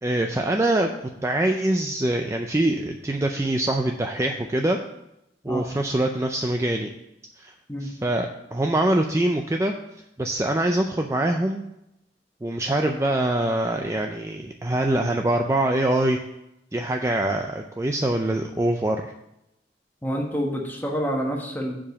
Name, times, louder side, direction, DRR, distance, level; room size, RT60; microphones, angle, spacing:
voice 1, 0.0-0.9 1.2-4.8 5.4-6.9 7.4-7.5 7.8-9.7 10.2-11.6 12.4-16.2 16.7-19.0, right 1 dB, 15° right, 3 dB, 0.4 m, -24 dB
voice 2, 20.0-21.7, equal, 10° left, 0 dB, 1.2 m, -27 dB
7.3 x 5.0 x 6.9 m, 0.85 s
head